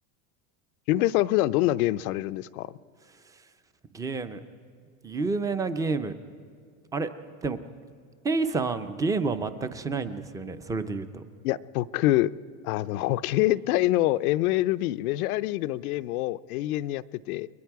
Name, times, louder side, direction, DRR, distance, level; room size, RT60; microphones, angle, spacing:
voice 1, 0.9-2.7 11.4-12.3 12.6-17.5, left 16 dB, 85° left, 0.6 m, -25 dB
voice 2, 3.9-4.4 5.0-6.1 6.9-7.1 7.4-7.6 8.2-11.2, right 4 dB, 10° right, 0.4 m, -29 dB
29.5 x 21.5 x 4.7 m
supercardioid pair, 150°, 43 cm